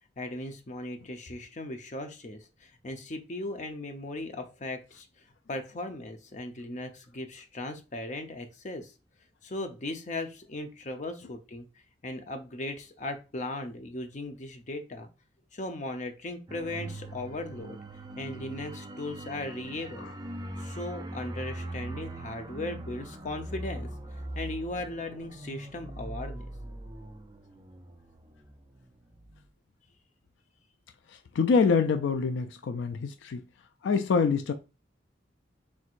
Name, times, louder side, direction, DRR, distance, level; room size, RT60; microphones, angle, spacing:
voice 1, 0.2-5.1 5.5-8.9 9.4-11.7 12.0-15.1 15.5-17.8 18.2-20.1 20.6-23.9 24.3-26.5, left 2 dB, 40° left, 0.7 m, -37 dB
sound 1, 16.5-28.8 29.1-29.3, right 1 dB, 20° right, 0.5 m, -41 dB
voice 2, 31.1-33.4 33.8-34.5, left 5 dB, 75° left, 0.4 m, -26 dB
4.5 x 3.6 x 2.5 m
head